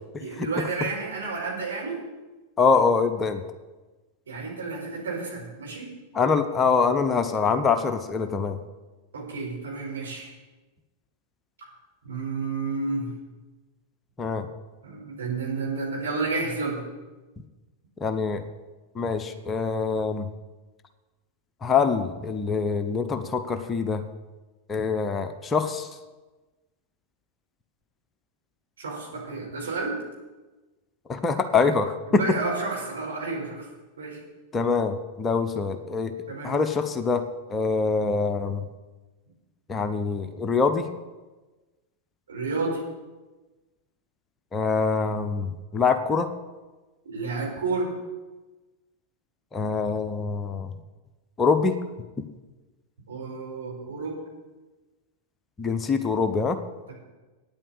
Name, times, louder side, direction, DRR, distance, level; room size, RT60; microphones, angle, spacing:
voice 1, 0.2-2.0 4.3-5.9 9.1-10.3 11.6-11.7 12.0-13.1 14.8-16.8 28.8-30.0 32.1-33.7 34.0-34.2 36.3-36.5 42.3-42.8 47.0-47.9 53.1-54.2, right 3 dB, 65° right, -3 dB, 4.8 m, -31 dB
voice 2, 2.6-3.4 6.1-8.6 14.2-14.5 18.0-18.4 19.0-20.3 21.6-24.0 24.7-25.9 31.1-32.2 34.5-36.1 36.4-37.2 37.5-38.6 39.7-40.9 44.5-46.3 49.5-50.7 51.4-51.7 55.6-56.6, left 5 dB, 20° left, 8 dB, 0.9 m, -24 dB
9.4 x 9.0 x 8.3 m, 1.2 s
figure-of-eight pair, 90°, 0 cm